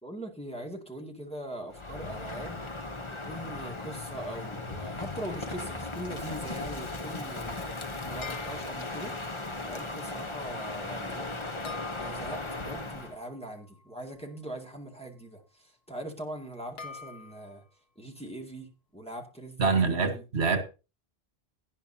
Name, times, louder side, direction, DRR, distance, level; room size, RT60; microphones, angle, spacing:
voice 1, 0.0-2.6 3.1-7.7 8.0-9.1 9.6-11.4 12.0-17.6 18.0-20.2, right 1 dB, 5° left, 2.3 m, -41 dB
Crow, 1.7-13.2, left 2 dB, 30° left, 1.1 m, -37 dB
sound 1, 8.2-9.2 11.6-14.8 16.8-17.7, left 5 dB, 70° left, 1.5 m, -47 dB
voice 2, 19.6-20.6, right 4 dB, 85° right, 1.8 m, -25 dB
17.5 x 10.0 x 2.8 m
omnidirectional pair, 1.1 m